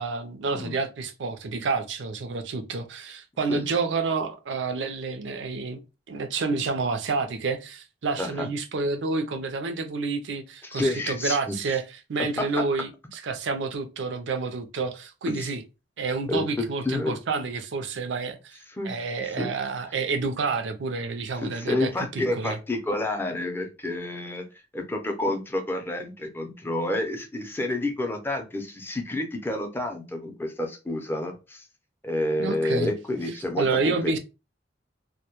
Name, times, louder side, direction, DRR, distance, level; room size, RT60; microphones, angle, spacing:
voice 1, 0.0-5.8 6.1-11.8 12.1-15.6 16.0-18.6 18.8-22.6 32.4-32.9 33.6-34.2, right 4 dB, 75° right, 0.5 m, -29 dB
voice 2, 8.2-8.5 10.6-11.5 12.4-12.6 15.3-15.5 16.3-17.1 18.7-19.0 19.2-19.5 21.3-24.5 24.7-31.6 32.0-34.1, left 1 dB, 10° left, 0.4 m, -29 dB
2.1 x 2.1 x 2.8 m
head